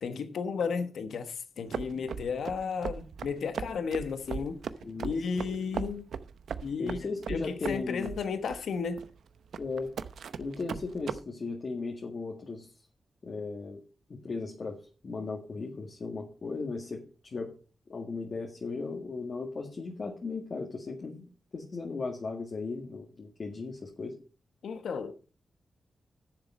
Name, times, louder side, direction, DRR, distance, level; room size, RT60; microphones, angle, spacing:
voice 1, 0.0-4.6 5.0-6.1 6.6-7.0 7.3-9.0 24.6-25.1, left 5 dB, 85° left, 1.1 m, -33 dB
sound 1, 1.7-11.2, right 7 dB, 85° right, 0.7 m, -38 dB
voice 2, 6.8-8.1 9.6-9.9 10.4-12.7 13.2-13.8 14.1-14.8 15.0-17.5 17.9-21.2 21.5-24.2, left 4 dB, 50° left, 2.0 m, -36 dB
10.5 x 7.1 x 5.3 m
cardioid pair, 75°, 0 cm